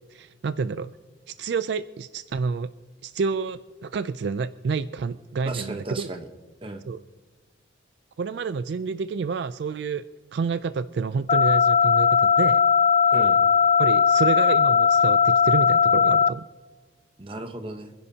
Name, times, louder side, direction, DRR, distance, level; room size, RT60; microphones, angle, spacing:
voice 1, 0.1-0.9 1.3-2.7 3.0-6.1 6.9-7.0 8.2-10.0 10.3-12.6 13.8-16.5, right 5 dB, 60° right, 13 dB, 0.3 m, -29 dB
voice 2, 5.5-6.3 6.6-6.9 13.1-13.4 17.2-17.9, right 2 dB, 30° right, 5 dB, 0.9 m, -35 dB
sound 1, 11.3-16.3, left 6 dB, 35° left, 0.4 m, -18 dB
27.5 x 10.5 x 2.8 m, 1.4 s
head